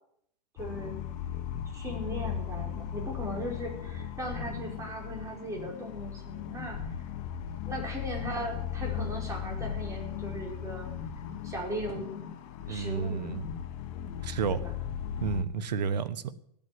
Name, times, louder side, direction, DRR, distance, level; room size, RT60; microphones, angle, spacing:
sound 1, 0.6-15.4, left 9 dB, 55° left, 1.8 m, -37 dB
voice 1, 0.6-1.0 1.7-6.8 7.7-10.9 11.4-12.3 12.7-13.4 14.5-14.7, equal, 15° right, 5.1 m, -38 dB
voice 2, 12.7-13.5 14.2-14.6 15.2-16.3, right 6 dB, 90° right, 1.1 m, -31 dB
15.5 x 9.0 x 7.8 m
supercardioid pair, 130°, 21 cm